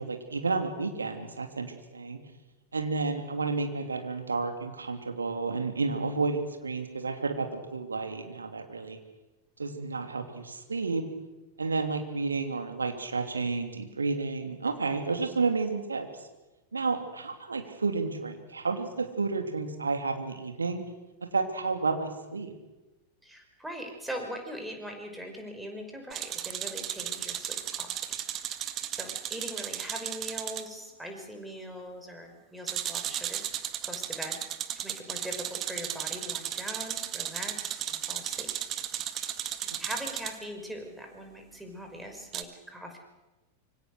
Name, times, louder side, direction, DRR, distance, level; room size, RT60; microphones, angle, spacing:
voice 1, 0.0-2.2 2.7-9.0 9.6-11.0 11.6-16.3 16.7-20.8 21.3-22.5, right 4 dB, 75° right, 6 dB, 3.0 m, -31 dB
voice 2, 23.2-28.2 28.9-33.4 33.9-34.4 34.8-38.5 39.8-43.0, equal, 5° right, 4 dB, 5.6 m, -41 dB
sound 1, 26.1-30.7 32.7-40.4 42.3-42.4, right 11 dB, 30° right, 1.8 m, -35 dB
26.0 x 24.5 x 6.5 m, 1.1 s
figure-of-eight pair, 90°, 0 cm